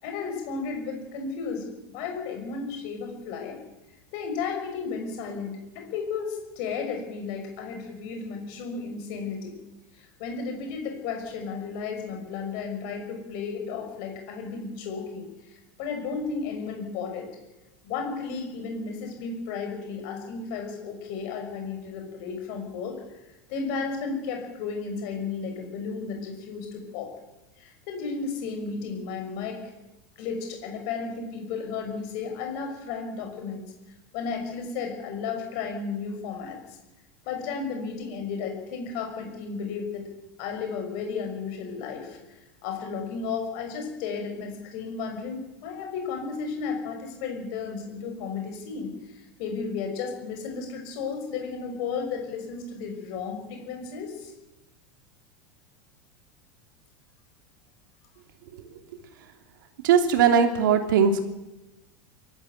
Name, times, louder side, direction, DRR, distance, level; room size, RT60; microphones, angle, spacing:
voice 1, 0.0-3.6 4.1-9.6 9.9-15.3 15.8-17.3 17.8-23.0 23.5-27.1 27.6-29.6 30.2-33.6 34.1-36.6 37.3-40.1 40.4-42.2 42.6-54.3, left 5 dB, 45° left, 3 dB, 6.0 m, -33 dB
voice 2, 59.8-61.2, right 7 dB, 90° right, 6 dB, 2.9 m, -19 dB
23.0 x 13.5 x 9.2 m, 1.0 s
supercardioid pair, 180°, 10 cm